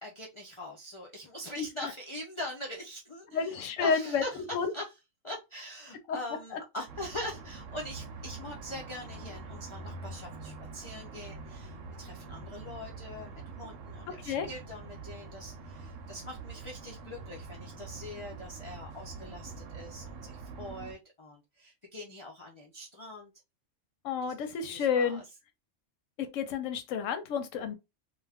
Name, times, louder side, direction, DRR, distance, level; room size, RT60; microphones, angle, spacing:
voice 1, 0.0-4.9 5.2-23.3 24.2-25.2, left 1 dB, 45° left, 0.4 m, -43 dB
voice 2, 1.6-1.9 3.3-4.2 4.5-4.7 14.2-14.5 24.0-25.2 26.2-27.8, left 6 dB, 80° left, 1.0 m, -30 dB
sound 1, 6.9-20.9, right 3 dB, 90° right, 1.0 m, -45 dB
2.3 x 2.3 x 3.3 m
omnidirectional pair, 1.3 m